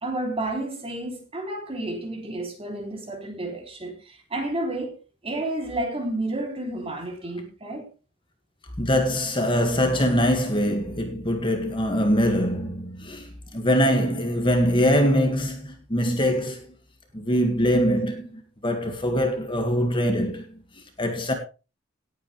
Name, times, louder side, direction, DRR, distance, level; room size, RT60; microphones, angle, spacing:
voice 1, 0.0-5.0 5.2-7.9, right 1 dB, 30° right, 3.2 m, -31 dB
voice 2, 8.8-16.7 17.1-20.6 21.0-21.3, equal, 25° left, 2.0 m, -23 dB
18.5 x 8.8 x 3.3 m
head